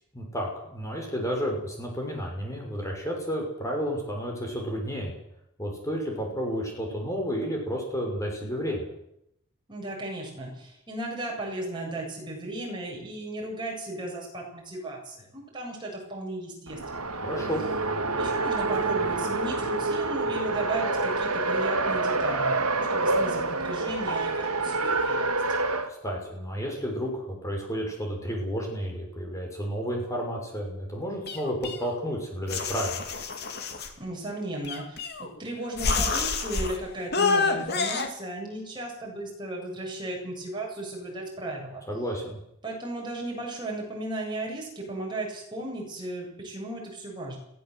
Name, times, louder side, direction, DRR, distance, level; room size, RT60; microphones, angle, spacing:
voice 1, 0.1-5.1 5.6-8.8 17.2-17.6 25.9-33.0 41.9-42.4, equal, 15° left, 1 dB, 6.1 m, -31 dB
voice 2, 9.7-16.8 17.1-17.2 18.1-25.4 34.0-41.8 42.6-47.4, right 1 dB, 20° right, -1 dB, 7.7 m, -35 dB
Race car auto racing, 16.7-25.9, right 3 dB, 85° right, 2.1 m, -27 dB
sound 1, 31.3-32.1 32.5-33.9 34.6-35.4 35.8-36.8 37.1-38.1, left 4 dB, 45° left, 2.6 m, -28 dB
22.0 x 16.0 x 8.0 m, 0.78 s
head